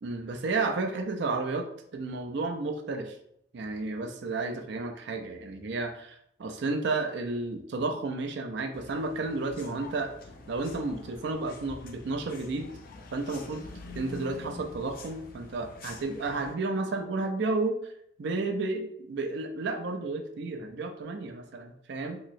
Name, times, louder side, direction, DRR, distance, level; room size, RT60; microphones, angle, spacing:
voice 1, 0.0-1.7 1.9-3.2 3.5-10.1 10.5-12.7 13.1-13.7 13.9-17.9 18.2-22.2, right 3 dB, 65° right, 4 dB, 0.4 m, -32 dB
sound 1, 8.7-16.5, left 3 dB, 50° left, 0.3 m, -46 dB
2.9 x 2.9 x 2.5 m, 0.71 s
head